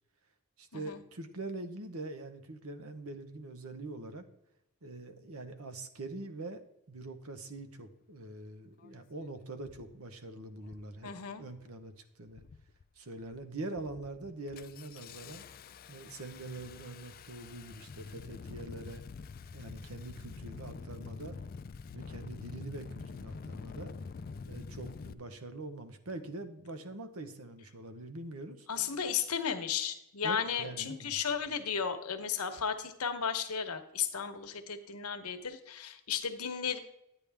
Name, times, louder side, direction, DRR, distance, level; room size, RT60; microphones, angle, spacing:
voice 1, 0.6-4.2 4.8-6.6 6.9-11.1 11.4-12.4 13.0-15.4 15.9-19.0 19.5-21.4 21.9-23.9 24.5-28.7 30.2-31.2, right 2 dB, 75° right, 8 dB, 1.0 m, -44 dB
Engine starting, 8.8-8.9 9.6-9.9 10.6-11.0 11.3-11.8 12.3-12.8 13.2-13.4 13.8-25.1, left 4 dB, 40° left, 0.3 m, -46 dB
voice 2, 11.0-11.4 28.7-36.8, left 7 dB, 90° left, 8 dB, 1.0 m, -34 dB
10.0 x 9.1 x 3.4 m, 0.83 s
head